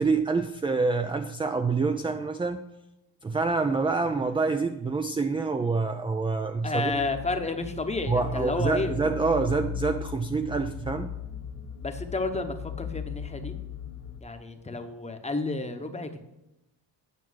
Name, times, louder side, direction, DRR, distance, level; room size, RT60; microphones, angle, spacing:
voice 1, 0.0-2.6 3.2-6.9 8.1-11.1, right 4 dB, 15° right, 0.3 m, -26 dB
voice 2, 6.6-9.0 11.8-13.5 14.2-16.2, left 3 dB, 15° left, 0.9 m, -31 dB
sound 1, 6.9-14.2, left 9 dB, 55° left, 1.7 m, -38 dB
9.5 x 5.9 x 6.2 m
cardioid pair, 135°, 42 cm